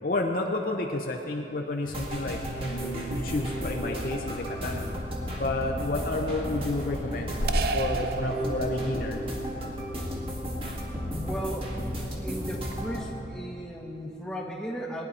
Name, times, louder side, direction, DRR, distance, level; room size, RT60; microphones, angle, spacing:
voice 1, 0.0-4.8 5.4-7.4 7.7-9.2, left 2 dB, 50° left, 2 dB, 0.6 m, -31 dB
sound 1, 1.7-13.2, equal, 90° left, 1.2 m, -40 dB
sound 2, 1.8-13.0, equal, 30° right, 1.6 m, -33 dB
sound 3, 7.5-9.1, right 4 dB, 55° right, 0.4 m, -32 dB
voice 2, 11.0-11.8 12.2-15.0, equal, 5° left, -1 dB, 1.1 m, -36 dB
18.5 x 10.0 x 4.2 m, 3.0 s
head